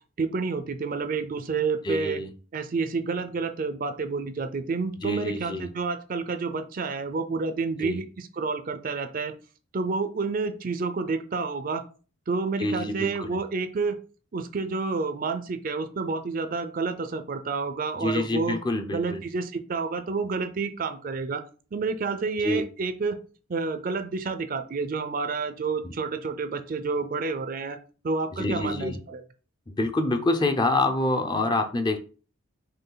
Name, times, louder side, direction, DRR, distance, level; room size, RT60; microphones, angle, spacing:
voice 1, 0.2-2.2 2.5-9.3 9.7-11.8 12.3-14.0 14.3-18.6 18.9-21.4 21.7-23.2 23.5-27.8 28.0-29.2, right 4 dB, 40° right, 9 dB, 0.4 m, -29 dB
voice 2, 1.8-2.3 5.0-5.7 7.8-8.0 12.6-13.3 18.0-19.2 22.4-22.6 25.8-25.9 28.3-29.0 29.7-32.0, left 2 dB, 20° left, 6 dB, 0.4 m, -26 dB
5.4 x 2.3 x 3.8 m, 0.37 s
head